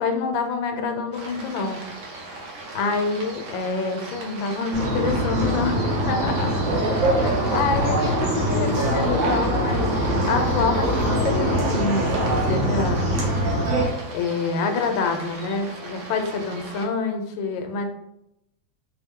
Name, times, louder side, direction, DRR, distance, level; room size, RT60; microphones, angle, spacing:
voice 1, 0.0-1.8 2.7-13.2 14.1-17.9, left 4 dB, 85° left, 5 dB, 1.3 m, -27 dB
sound 1, 1.1-16.9, right 2 dB, 50° right, 0.9 m, -38 dB
sound 2, 4.7-13.8, right 1 dB, 80° right, 1.7 m, -23 dB
4.2 x 2.3 x 3.6 m, 0.82 s
omnidirectional pair, 2.1 m